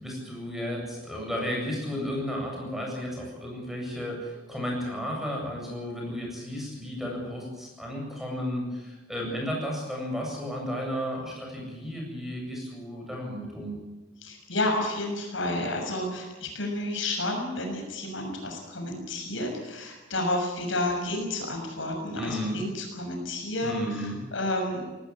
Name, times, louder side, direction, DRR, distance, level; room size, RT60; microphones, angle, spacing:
voice 1, 0.0-13.8 22.2-22.6 23.6-24.2, equal, ahead, -1 dB, 7.9 m, -33 dB
voice 2, 14.2-24.8, left 1 dB, 70° left, 3 dB, 6.5 m, -31 dB
19.5 x 19.0 x 9.8 m, 1.1 s
head